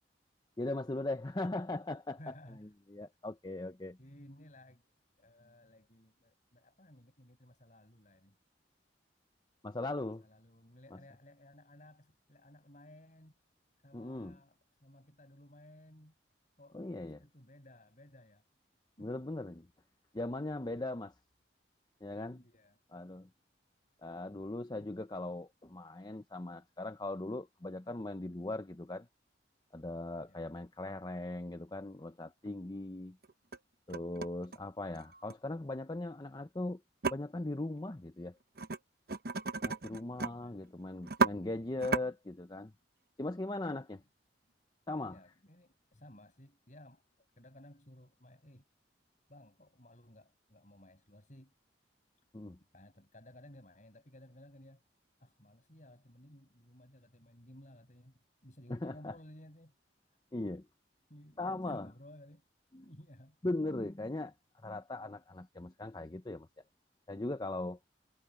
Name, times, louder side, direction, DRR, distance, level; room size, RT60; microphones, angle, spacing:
voice 1, 0.6-2.3 2.6-4.0 9.6-10.2 13.9-14.4 16.7-17.2 19.0-19.7 20.1-21.1 22.0-22.4 22.9-23.3 24.0-29.1 29.7-33.2 33.9-36.8 37.1-38.4 39.6-42.7 43.2-44.0 44.9-45.2 52.3-52.6 58.7-59.1 60.3-60.7 61.4-61.9 62.7-62.9 63.4-64.3 64.6-66.5 67.1-67.8, left 2 dB, 25° left, 0.7 m, -39 dB
voice 2, 2.2-2.7 4.0-4.9 5.2-8.4 10.2-13.4 13.8-16.1 16.6-18.4 19.0-19.2 20.5-20.9 22.3-22.8 30.2-30.5 39.9-40.6 45.0-48.7 49.3-51.5 52.7-54.8 55.2-59.7 61.1-62.4 62.8-63.4, left 1 dB, 45° left, 7.0 m, -57 dB
sound 1, 31.8-31.9 32.4-32.5 33.2-33.6 33.9-35.3 37.0-37.1 38.6-38.8 39.1-40.3 40.6-40.7 41.0-41.3 41.8-42.0, right 4 dB, 55° right, 1.0 m, -33 dB
head